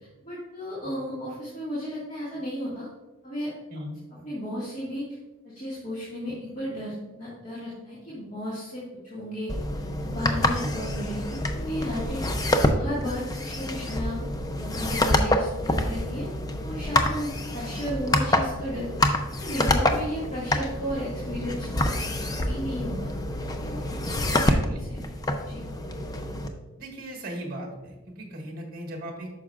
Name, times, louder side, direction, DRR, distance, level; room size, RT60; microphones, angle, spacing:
voice 1, 0.2-2.9 3.2-3.5 4.1-5.0 5.4-9.5 10.0-14.2 14.5-16.3 16.6-21.8 22.4-23.1 23.6-24.6 24.9-25.1 25.5-25.6, equal, 35° left, -10 dB, 1.8 m, -34 dB
sound 1, 9.5-26.5, left 1 dB, 20° left, 0.4 m, -27 dB
voice 2, 24.2-24.9 26.8-29.3, right 1 dB, 45° right, 0 dB, 1.5 m, -38 dB
9.2 x 6.1 x 2.4 m, 1.1 s
head